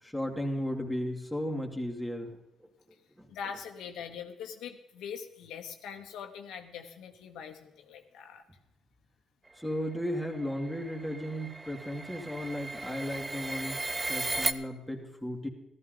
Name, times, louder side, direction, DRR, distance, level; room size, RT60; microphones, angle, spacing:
voice 1, 0.0-2.3 3.2-3.3 9.6-15.5, equal, ahead, 2 dB, 2.3 m, -35 dB
voice 2, 3.3-8.4, left 7 dB, 85° left, 4 dB, 1.2 m, -42 dB
sound 1, 9.8-14.5, right 2 dB, 20° right, 0.6 m, -36 dB
14.5 x 13.5 x 3.9 m, 0.92 s
cardioid pair, 90°, 0 cm